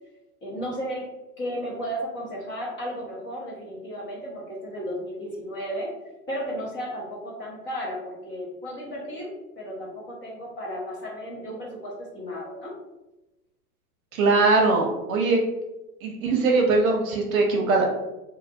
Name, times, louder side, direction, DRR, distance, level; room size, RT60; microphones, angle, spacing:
voice 1, 0.4-1.1 1.4-5.9 6.3-12.7, equal, 25° left, -4 dB, 0.7 m, -34 dB
voice 2, 14.1-15.4 16.0-17.9, right 3 dB, 60° right, 1 dB, 0.7 m, -21 dB
2.5 x 2.0 x 2.6 m, 1.0 s
hypercardioid pair, 105°, 46 cm